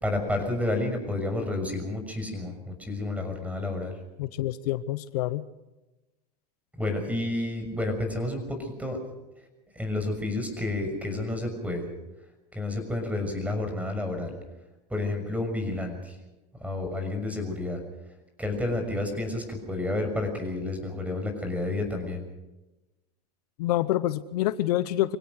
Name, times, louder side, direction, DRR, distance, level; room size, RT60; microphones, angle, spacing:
voice 1, 0.0-3.9 6.8-9.0 9.7-11.8 12.5-14.3 14.9-16.2 16.6-17.8 18.4-22.2, left 2 dB, 5° right, 6 dB, 6.5 m, -30 dB
voice 2, 4.2-5.4 23.6-25.2, left 14 dB, 70° left, 16 dB, 0.8 m, -27 dB
25.0 x 17.0 x 6.4 m, 1.0 s
hypercardioid pair, 90°, 21 cm